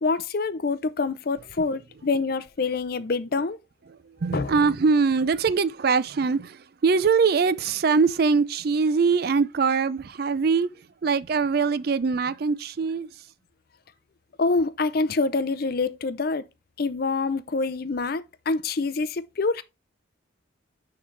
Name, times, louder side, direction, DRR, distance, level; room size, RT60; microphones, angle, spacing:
voice 1, 0.0-3.6 4.3-4.5 14.4-16.4 16.8-19.6, left 3 dB, 50° left, 0.5 m, -26 dB
voice 2, 4.2-10.7 11.0-13.1, right 5 dB, 50° right, 0.4 m, -22 dB
9.6 x 3.9 x 3.2 m
head